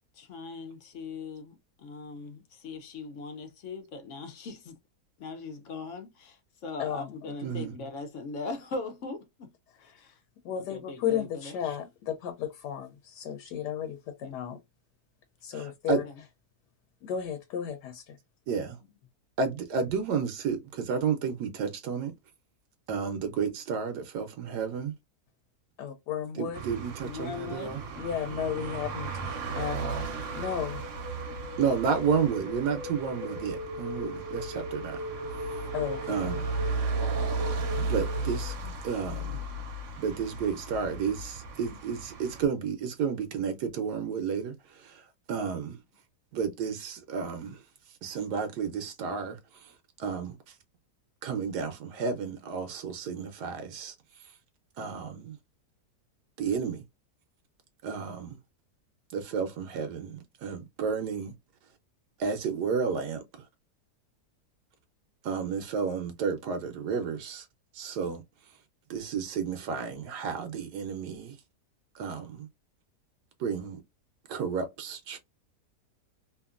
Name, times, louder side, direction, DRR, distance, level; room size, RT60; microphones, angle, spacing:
voice 1, 0.1-4.8 5.2-9.5 9.8-10.2 10.6-11.8 14.2-14.3 27.0-27.8, left 3 dB, 65° left, 0.7 m, -40 dB
voice 2, 6.8-7.1 9.9-10.0 10.4-14.6 15.4-16.0 17.0-18.2 25.8-26.6 27.6-30.9 35.7-36.2, left 9 dB, 85° left, 1.2 m, -34 dB
voice 3, 7.4-7.7 15.5-16.0 18.5-18.8 19.4-22.1 22.9-24.9 26.4-27.8 31.6-35.0 35.3-35.7 36.1-36.5 37.8-39.5 40.0-45.8 46.3-50.6 51.2-54.4 54.8-55.4 56.4-56.8 57.8-58.4 59.1-61.3 62.2-63.5 65.2-67.5 67.7-68.6 68.9-71.4 71.9-72.5 73.4-73.8 74.3-75.2, right 6 dB, 80° right, 1.2 m, -32 dB
sound 1, 26.5-42.4, right 3 dB, 60° right, 0.9 m, -35 dB
sound 2, 28.8-38.6, left 1 dB, 20° right, 0.7 m, -40 dB
2.8 x 2.5 x 2.4 m
omnidirectional pair, 1.8 m